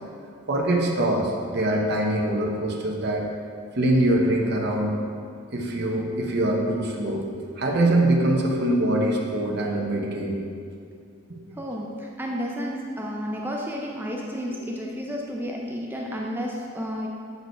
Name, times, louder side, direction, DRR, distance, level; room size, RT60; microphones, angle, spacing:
voice 1, 0.5-3.3 3.7-5.0 5.5-7.2 7.6-10.4 11.3-11.4, right 1 dB, 50° right, -1 dB, 0.8 m, -23 dB
voice 2, 11.5-17.1, equal, 10° right, -1 dB, 0.5 m, -31 dB
7.8 x 4.7 x 4.5 m, 2.3 s
head